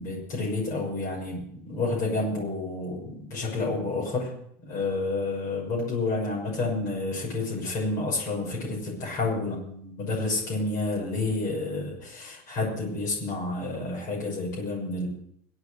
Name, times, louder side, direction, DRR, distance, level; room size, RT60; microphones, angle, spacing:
voice 1, 0.0-4.3 4.7-9.6 10.0-15.1, left 2 dB, 40° left, -4 dB, 6.2 m, -29 dB
23.5 x 8.1 x 6.4 m, 0.72 s
supercardioid pair, 165°, 7 cm